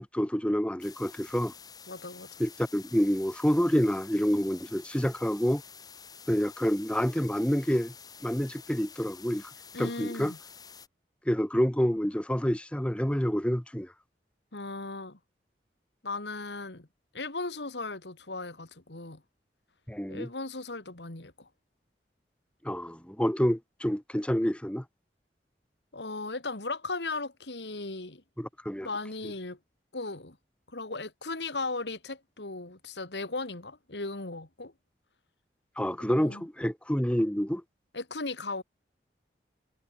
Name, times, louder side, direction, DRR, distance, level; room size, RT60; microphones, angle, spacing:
voice 1, 0.0-1.5 2.4-5.6 6.3-7.9 8.2-9.5 9.8-10.3 11.3-13.9 19.9-20.3 22.6-24.8 28.4-28.9 35.8-37.6, equal, 5° left, 1.1 m, -28 dB
sound 1, 0.8-10.9, left 6 dB, 20° left, 7.9 m, -49 dB
voice 2, 1.9-2.3 9.7-10.4 14.5-15.2 16.0-16.9 17.1-19.2 20.1-21.5 25.9-28.2 28.8-29.6 29.9-30.4 30.7-34.7 36.0-36.4 37.9-38.6, left 3 dB, 85° left, 2.5 m, -37 dB
head